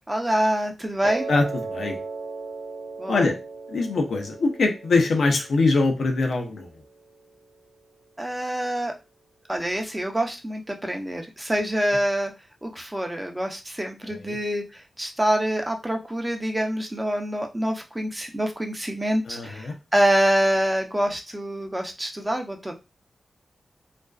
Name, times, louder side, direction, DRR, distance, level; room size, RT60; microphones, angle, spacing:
voice 1, 0.1-1.3 3.0-3.3 8.2-8.9 9.5-12.3 12.6-14.6 15.0-22.7, right 1 dB, 15° right, 3 dB, 0.6 m, -26 dB
Piano, 1.0-7.2, right 4 dB, 85° right, 0.5 m, -37 dB
voice 2, 1.3-2.0 3.1-3.4 3.7-6.7 14.0-14.4 19.3-19.7, left 3 dB, 80° left, 3 dB, 0.5 m, -23 dB
2.4 x 2.2 x 2.3 m, 0.27 s
cardioid pair, 60°, 0 cm